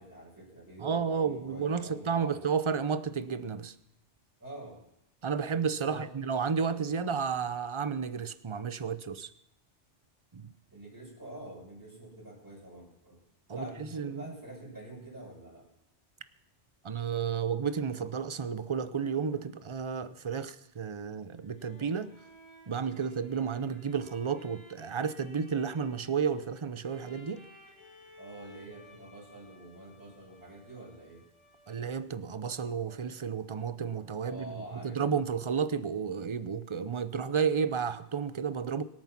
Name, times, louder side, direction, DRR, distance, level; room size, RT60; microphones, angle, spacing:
voice 1, 0.0-2.4 4.4-4.8 5.8-6.1 10.7-13.2 13.5-15.7 28.2-31.2 34.2-35.0, right 1 dB, 15° right, 6.4 m, -46 dB
voice 2, 0.8-3.7 5.2-9.3 10.3-10.5 13.5-14.2 16.8-22.1 22.7-27.4 31.7-38.8, right 6 dB, 30° right, 0.6 m, -32 dB
sound 1, 21.2-32.1, left 1 dB, 25° left, 2.4 m, -57 dB
24.5 x 8.9 x 5.9 m
omnidirectional pair, 1.2 m